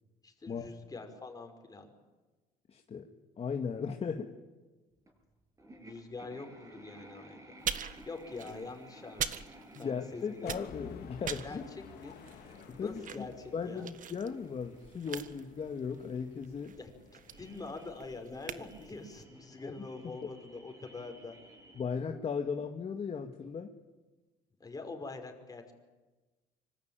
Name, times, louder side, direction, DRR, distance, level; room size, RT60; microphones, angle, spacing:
voice 1, 0.2-1.9 5.8-7.4 8.1-9.4 9.8-10.5 11.4-12.2 12.8-13.9 16.7-21.4 24.6-25.7, left 3 dB, 20° left, 5 dB, 5.6 m, -45 dB
voice 2, 2.7-3.1 3.4-4.3 9.7-11.6 12.7-13.2 13.5-16.8 19.6-19.7 20.0-20.1 21.8-23.7, left 6 dB, 35° left, 5 dB, 2.1 m, -37 dB
sound 1, 5.1-5.2 5.6-21.8, right 1 dB, 20° right, 7.9 m, -56 dB
sound 2, 7.6-10.1 10.4-19.2, right 8 dB, 50° right, 1.7 m, -42 dB
sound 3, 10.4-18.2, left 8 dB, 75° left, 3.8 m, -54 dB
26.0 x 25.0 x 9.2 m, 1.2 s
cardioid pair, 110°, 17 cm